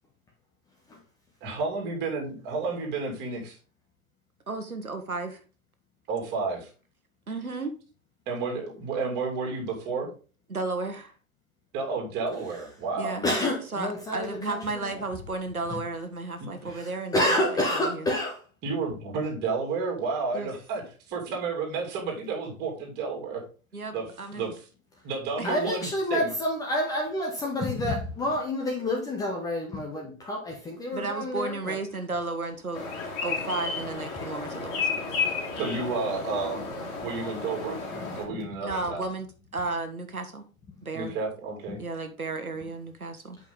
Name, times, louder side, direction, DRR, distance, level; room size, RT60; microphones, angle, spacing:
voice 1, 1.4-3.6 6.1-6.7 8.3-10.1 11.7-13.2 16.4-16.8 18.6-23.4 23.9-24.1 24.3-24.5 25.0-26.3 34.6-34.7 35.6-36.7 37.0-37.8 38.1-39.0 40.9-41.8, right 4 dB, 25° right, 2.7 m, -31 dB
voice 2, 4.5-5.4 7.3-7.7 10.5-11.1 13.0-13.3 13.7-18.1 20.3-20.5 23.7-24.5 25.4-25.5 30.9-32.8 33.2-35.2 38.6-39.3 39.5-40.4 40.8-41.2 41.8-43.4, right 3 dB, 80° right, 1.3 m, -33 dB
voice 3, 13.2-15.0 15.7-15.8 16.7-18.4 25.4-31.8 38.0-38.5, left 1 dB, 10° left, 0.9 m, -29 dB
sound 1, 32.7-38.2, left 4 dB, 30° left, 2.5 m, -32 dB
8.4 x 5.5 x 3.8 m
figure-of-eight pair, 115°, 42 cm